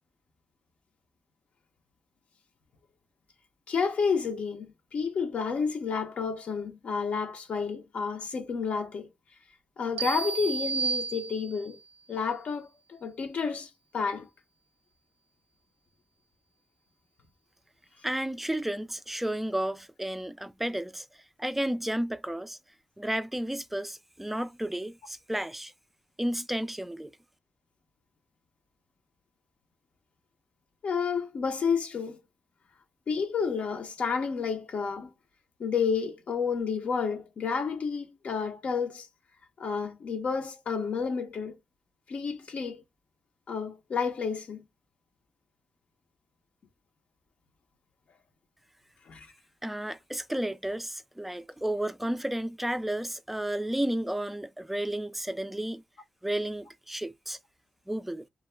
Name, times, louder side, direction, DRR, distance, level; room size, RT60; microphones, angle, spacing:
voice 1, 3.7-9.1 9.8-11.8 12.1-14.3 30.8-32.2 33.1-35.1 35.6-39.1 39.6-41.6 42.1-42.8 43.5-44.6 49.1-49.3, left 5 dB, 65° left, 0.6 m, -30 dB
sound 1, 10.0-11.8, right 5 dB, 85° right, 0.3 m, -32 dB
voice 2, 18.0-21.1 21.4-22.6 23.0-25.7 26.2-27.1 49.6-55.8 56.2-57.4 57.9-58.2, right 1 dB, 5° right, 0.3 m, -32 dB
2.2 x 2.1 x 3.1 m
cardioid pair, 90°, 2 cm